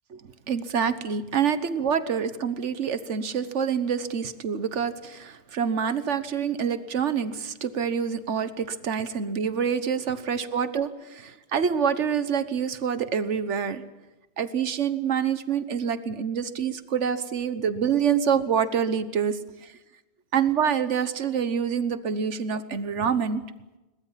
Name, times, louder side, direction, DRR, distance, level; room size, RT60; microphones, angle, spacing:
voice 1, 0.5-13.8 14.4-19.7 20.3-23.4, right 7 dB, 80° right, 12 dB, 1.5 m, -26 dB
22.0 x 20.0 x 7.5 m, 1.1 s
omnidirectional pair, 1.2 m